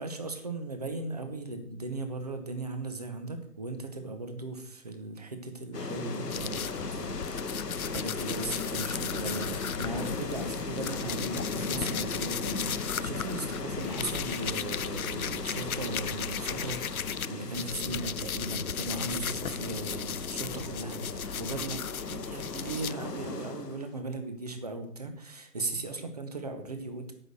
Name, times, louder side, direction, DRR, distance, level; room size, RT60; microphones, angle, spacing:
voice 1, 0.0-21.8 22.1-27.1, right 2 dB, 25° right, 7 dB, 1.0 m, -37 dB
sound 1, 5.7-23.9, left 4 dB, 85° left, 1.2 m, -37 dB
sound 2, 6.3-17.3 17.5-22.9, left 8 dB, 65° left, 0.5 m, -37 dB
9.1 x 6.1 x 7.6 m, 0.68 s
figure-of-eight pair, 160°, 47 cm